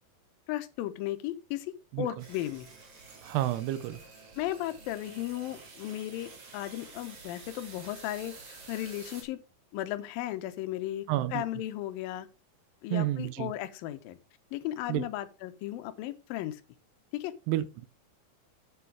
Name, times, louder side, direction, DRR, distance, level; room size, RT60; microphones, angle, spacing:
voice 1, 0.5-2.7 4.4-9.4 9.7-12.3 12.8-14.2 14.5-16.6 17.1-17.3, left 14 dB, 75° left, 2.3 m, -35 dB
sound 1, 2.2-9.2, right 4 dB, 40° right, 2.9 m, -50 dB
voice 2, 3.2-4.0 11.1-11.4 12.9-13.5 14.9-15.1 17.5-17.9, right 14 dB, 85° right, 2.6 m, -30 dB
8.1 x 7.4 x 4.7 m
omnidirectional pair, 4.9 m